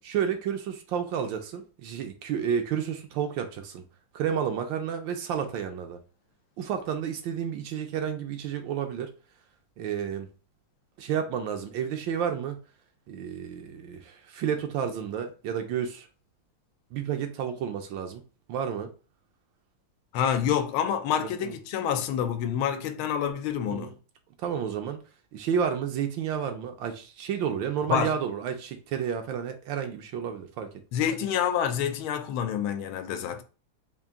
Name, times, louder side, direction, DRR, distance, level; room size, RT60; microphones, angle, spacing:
voice 1, 0.1-3.8 4.1-6.0 6.6-9.1 9.8-10.3 11.0-12.6 13.1-16.1 16.9-18.2 18.5-18.9 21.2-21.5 23.7-23.9 24.4-25.0 25.3-30.7, right 8 dB, 75° right, 1.2 m, -31 dB
voice 2, 20.1-23.9 27.9-28.2 30.9-33.4, left 9 dB, 85° left, 1.4 m, -27 dB
3.8 x 2.5 x 3.5 m
omnidirectional pair, 2.3 m